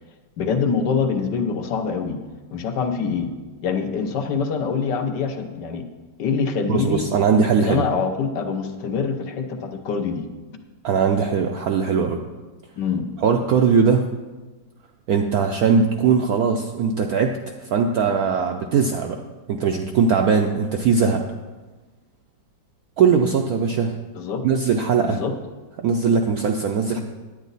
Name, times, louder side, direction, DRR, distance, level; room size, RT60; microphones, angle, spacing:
voice 1, 0.4-2.2 2.5-3.3 3.6-5.8 6.2-7.0 7.6-10.3 12.8-13.1 24.1-24.4 25.1-25.3, left 5 dB, 65° left, 5 dB, 1.4 m, -24 dB
voice 2, 6.7-7.8 10.8-12.2 13.2-14.0 15.1-19.2 19.5-21.2 23.0-23.9 24.4-25.2 25.8-27.0, right 5 dB, 75° right, 4 dB, 0.8 m, -20 dB
10.0 x 9.0 x 4.0 m, 1.3 s
omnidirectional pair, 2.1 m